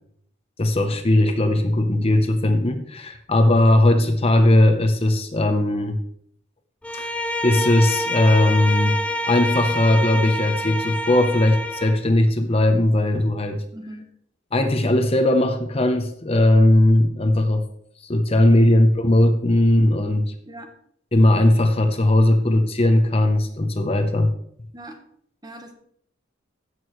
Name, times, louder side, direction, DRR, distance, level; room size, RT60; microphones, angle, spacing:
voice 1, 0.6-6.0 6.9-7.1 7.4-13.6 14.5-17.7 18.0-20.3 21.1-24.3, left 1 dB, 30° left, 6 dB, 0.8 m, -18 dB
Bowed string instrument, 6.8-12.0, left 1 dB, 5° left, 0.5 m, -27 dB
voice 2, 13.7-14.0 18.5-18.9 19.8-19.9 20.4-20.7 24.7-25.0 25.4-25.7, right 1 dB, 20° right, 5 dB, 1.2 m, -39 dB
15.5 x 6.4 x 3.1 m, 0.67 s
head